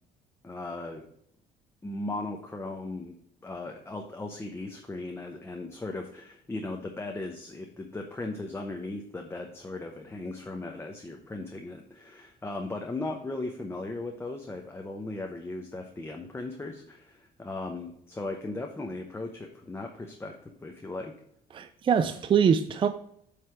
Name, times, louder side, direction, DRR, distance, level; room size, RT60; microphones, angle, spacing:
voice 1, 0.4-1.0 1.8-3.1 3.4-21.1, left 2 dB, 15° left, 2 dB, 0.8 m, -37 dB
voice 2, 21.5-22.9, right 7 dB, 30° right, 10 dB, 0.4 m, -23 dB
7.8 x 3.3 x 5.7 m, 0.69 s
cardioid pair, 110°, 17 cm